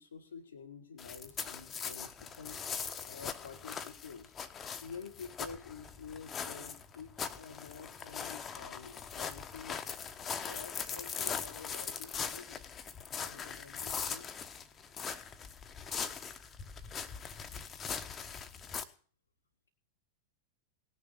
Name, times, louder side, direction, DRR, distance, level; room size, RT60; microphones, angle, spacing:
voice 1, 0.0-4.3 4.8-9.8 10.3-12.8 13.2-14.3, left 6 dB, 70° left, 5 dB, 1.3 m, -49 dB
sound 1, 1.0-18.8, left 6 dB, 25° left, 1.1 m, -41 dB
18.5 x 6.7 x 8.3 m, 0.43 s
figure-of-eight pair, 90°, 0 cm